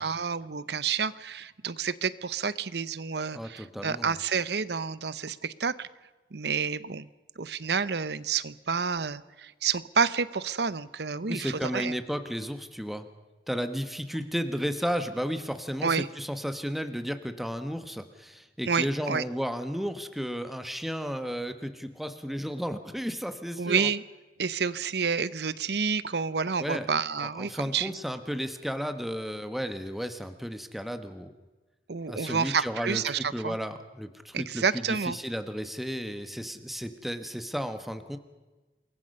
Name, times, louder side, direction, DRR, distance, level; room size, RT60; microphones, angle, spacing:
voice 1, 0.0-5.9 6.3-7.1 7.4-11.9 15.8-16.1 18.7-19.2 23.6-24.0 24.4-27.9 31.9-33.6 34.3-35.2, right 5 dB, 65° right, 17 dB, 0.8 m, -29 dB
voice 2, 3.3-4.1 11.3-13.0 13.5-23.9 26.6-26.9 27.2-31.3 32.1-38.2, equal, ahead, 8 dB, 1.2 m, -33 dB
28.0 x 22.0 x 5.5 m, 1.2 s
head